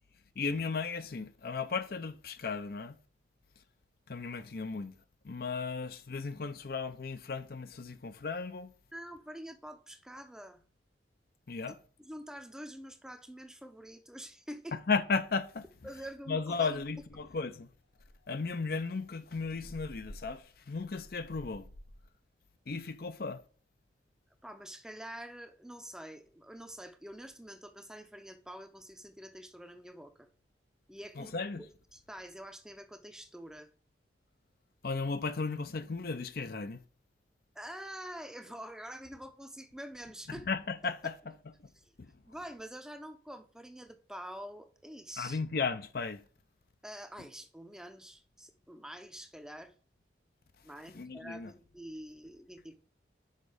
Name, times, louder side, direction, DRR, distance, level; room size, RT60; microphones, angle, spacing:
voice 1, 0.4-3.0 4.1-4.9 5.2-8.7 11.5-11.8 14.7-15.6 16.3-17.7 18.3-21.7 22.7-23.4 31.2-31.6 34.8-36.8 40.3-41.1 42.0-42.1 45.2-46.2 50.9-51.5, left 4 dB, 55° left, 0.5 m, -35 dB
voice 2, 8.9-10.6 12.0-14.8 15.8-16.8 24.4-30.3 30.9-33.7 37.5-40.5 41.8-41.9 42.3-45.4 46.8-49.7 50.6-52.8, equal, 5° right, 0.6 m, -46 dB
sound 1, 15.8-16.0 16.3-16.4 16.7-17.4 17.9-22.1, equal, 70° left, 1.0 m, -53 dB
6.5 x 5.1 x 5.0 m
head